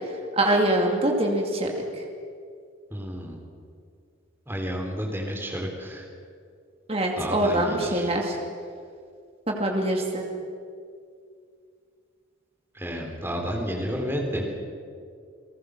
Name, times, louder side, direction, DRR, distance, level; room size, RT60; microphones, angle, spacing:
voice 1, 0.4-1.7 6.9-8.4 9.5-10.3, right 1 dB, 30° right, 1 dB, 2.4 m, -24 dB
voice 2, 2.9-3.4 4.5-6.1 7.2-8.1 12.8-14.4, equal, 10° right, 0 dB, 3.6 m, -31 dB
30.0 x 18.5 x 6.5 m, 2.3 s
head